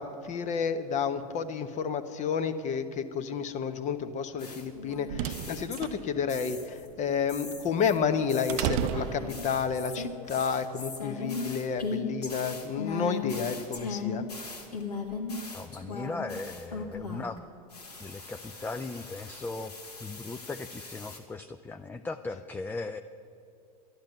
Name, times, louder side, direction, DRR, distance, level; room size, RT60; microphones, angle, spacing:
voice 1, 0.0-14.2, left 6 dB, 35° left, 10 dB, 1.0 m, -31 dB
sound 1, 4.4-6.0 6.3-6.9 7.3-17.4 17.7-21.2, left 4 dB, 90° left, 2.1 m, -38 dB
sound 2, 4.6-9.9, right 10 dB, 55° right, 0.6 m, -35 dB
voice 2, 15.5-17.4 18.0-19.7 20.0-23.0, left 3 dB, 10° left, 8 dB, 0.4 m, -38 dB
11.5 x 11.0 x 9.0 m, 2.5 s
hypercardioid pair, 85°, 20 cm